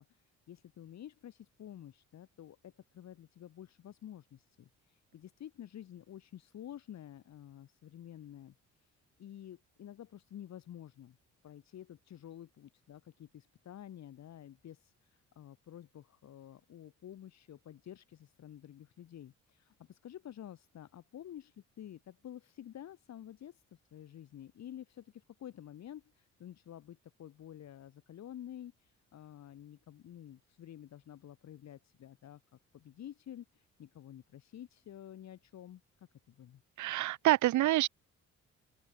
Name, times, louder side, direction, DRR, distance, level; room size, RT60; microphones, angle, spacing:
voice 1, 0.0-8.5 8.8-8.9 9.2-11.2 11.4-23.6 23.9-36.6, left 11 dB, 65° left, 2.0 m, -50 dB
voice 2, 36.8-37.9, right 15 dB, 75° right, 0.7 m, -27 dB
open air
cardioid pair, 90°, 30 cm